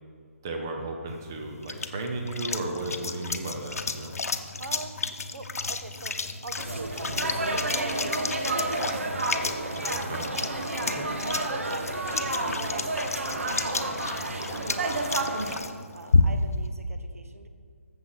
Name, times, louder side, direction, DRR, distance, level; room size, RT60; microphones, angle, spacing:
voice 1, 0.4-4.1 9.9-10.2 10.9-11.1, right 2 dB, 15° right, 2 dB, 0.5 m, -34 dB
water splash, 1.1-16.6, left 4 dB, 85° left, 0.8 m, -32 dB
voice 2, 4.6-5.0 5.3-10.6 11.1-12.6 12.9-17.5, right 3 dB, 75° right, 7 dB, 1.2 m, -44 dB
sound 1, 6.6-15.6, right 2 dB, 60° right, 1.3 m, -30 dB
14.0 x 7.2 x 4.0 m, 2.1 s
hypercardioid pair, 180°, 8 cm